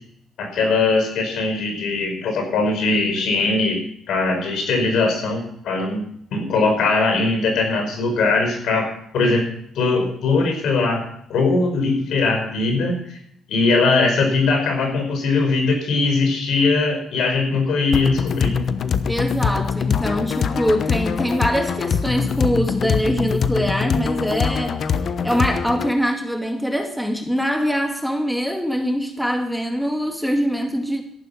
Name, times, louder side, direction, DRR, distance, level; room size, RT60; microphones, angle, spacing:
voice 1, 0.4-3.8 4.1-6.0 6.3-9.4 9.8-11.0 11.3-13.2 13.5-18.7, left 3 dB, 75° left, 5.4 m, -20 dB
sound 1, 17.9-25.9, left 6 dB, 55° left, 1.0 m, -23 dB
voice 2, 19.1-24.8 25.2-31.0, equal, ahead, 2.1 m, -23 dB
14.0 x 11.5 x 5.9 m
cardioid pair, 80°, 0 cm